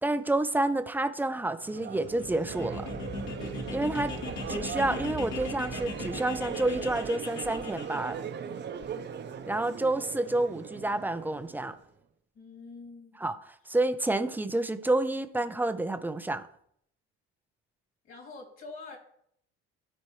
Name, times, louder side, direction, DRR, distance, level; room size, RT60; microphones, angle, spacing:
voice 1, 0.0-2.9 3.7-4.1 4.5-8.2 9.5-11.7 13.2-13.3 13.7-16.4, right 2 dB, 5° right, 0.4 m, -29 dB
Crowd, 1.6-11.8, right 7 dB, 35° right, 0.7 m, -39 dB
sound 1, 2.0-8.1, left 3 dB, 70° left, 2.4 m, -39 dB
voice 2, 12.3-13.3 18.0-19.0, left 3 dB, 45° left, 2.7 m, -45 dB
13.0 x 4.3 x 3.1 m
cardioid pair, 110°, 29 cm